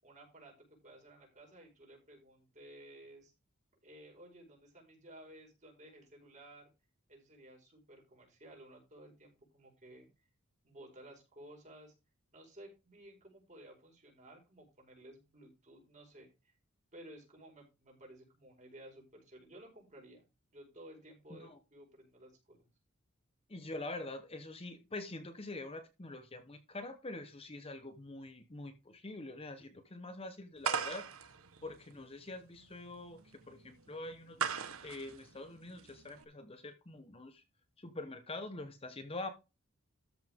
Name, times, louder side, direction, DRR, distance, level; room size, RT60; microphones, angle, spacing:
voice 1, 0.0-3.3 3.8-6.7 7.1-10.1 10.6-11.9 12.3-16.5 16.9-22.7, right 1 dB, 35° right, 0 dB, 5.1 m, -56 dB
voice 2, 23.5-31.1 31.6-34.5 34.8-37.4 37.8-39.3, left 2 dB, 25° left, 9 dB, 1.0 m, -45 dB
sound 1, 30.6-36.2, right 6 dB, 75° right, 1.1 m, -40 dB
13.5 x 5.8 x 3.6 m, 0.27 s
head